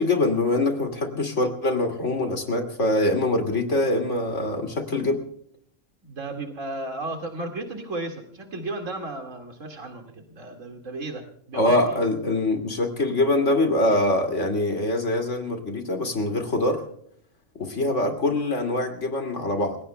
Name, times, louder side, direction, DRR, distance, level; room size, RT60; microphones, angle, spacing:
voice 1, 0.0-5.2 11.5-16.8 17.5-19.8, left 2 dB, 70° left, 5 dB, 2.8 m, -24 dB
voice 2, 6.0-11.7, right 2 dB, 90° right, 3 dB, 2.5 m, -34 dB
29.0 x 17.0 x 2.2 m, 0.65 s
omnidirectional pair, 1.3 m